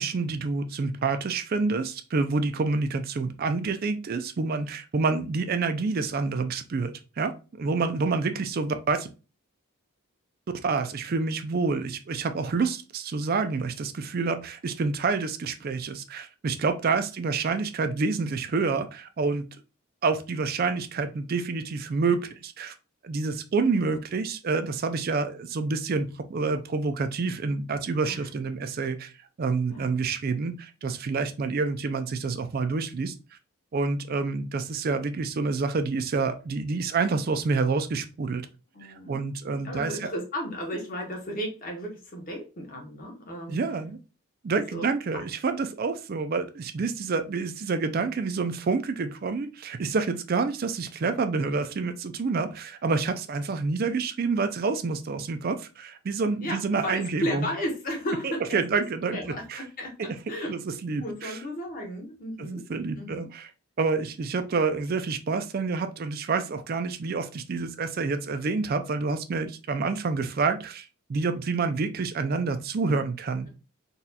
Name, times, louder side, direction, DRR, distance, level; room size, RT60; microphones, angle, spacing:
voice 1, 0.0-9.1 10.6-19.4 20.0-22.7 23.0-29.1 29.4-33.1 33.7-38.4 38.8-40.1 43.5-44.0 44.4-57.5 58.2-59.6 60.0-60.1 60.5-61.4 62.4-63.5 63.8-73.5, right 4 dB, 40° right, 9 dB, 0.3 m, -28 dB
voice 2, 38.7-39.3 39.6-43.6 44.7-44.8 45.1-45.2 56.4-58.8 59.1-60.5 61.0-62.7 62.9-63.3, equal, 40° left, 1 dB, 0.9 m, -34 dB
4.0 x 2.3 x 2.7 m, 0.33 s
head